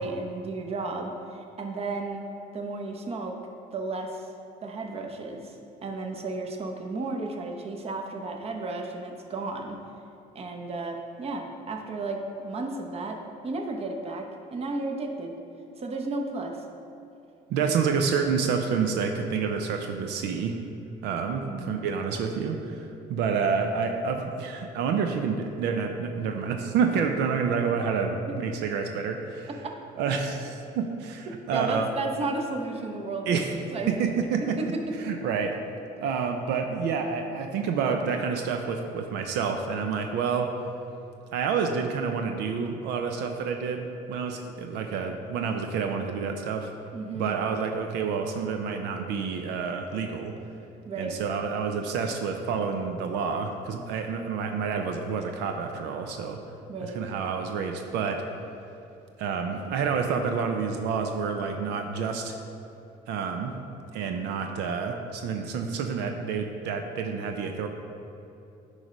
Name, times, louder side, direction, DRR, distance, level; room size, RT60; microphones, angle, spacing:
voice 1, 0.0-2.2 2.5-3.4 3.7-4.3 4.6-5.6 5.8-9.8 10.3-15.3 15.8-16.6 21.3-21.7 28.3-28.4 29.6-29.8 31.5-33.4 33.7-34.1 34.4-35.2 46.9-47.4 50.9-51.2 56.7-57.0, right 3 dB, 35° right, 3 dB, 0.8 m, -33 dB
voice 2, 17.5-20.6 21.0-29.5 30.0-31.9 33.3-33.5 33.9-34.7 35.0-35.5 36.0-40.5 41.3-46.7 47.1-50.3 51.0-56.4 56.8-58.2 59.2-62.4 63.1-63.5 63.9-67.7, right 5 dB, 85° right, 4 dB, 0.6 m, -28 dB
9.3 x 3.3 x 5.0 m, 2.7 s
cardioid pair, 110°, 17 cm